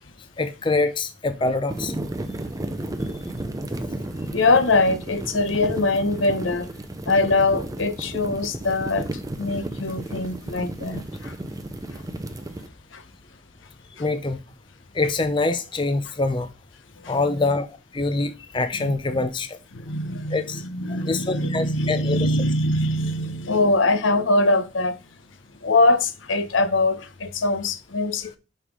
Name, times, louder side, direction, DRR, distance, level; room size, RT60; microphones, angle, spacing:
voice 1, 0.4-1.9 14.0-14.4 15.0-16.5 17.1-17.7 17.9-19.6 20.3-20.6 21.1-22.2, left 3 dB, 25° left, 0.5 m, -24 dB
sound 1, 1.7-12.7, right 1 dB, 20° right, 0.5 m, -33 dB
voice 2, 4.3-6.7 7.1-9.1 9.4-11.3 11.9-12.0 12.9-13.0 14.0-14.1 17.0-17.2 18.8-19.2 19.7-25.0 25.6-28.4, left 2 dB, 80° left, 0.9 m, -23 dB
5.6 x 5.3 x 4.7 m
head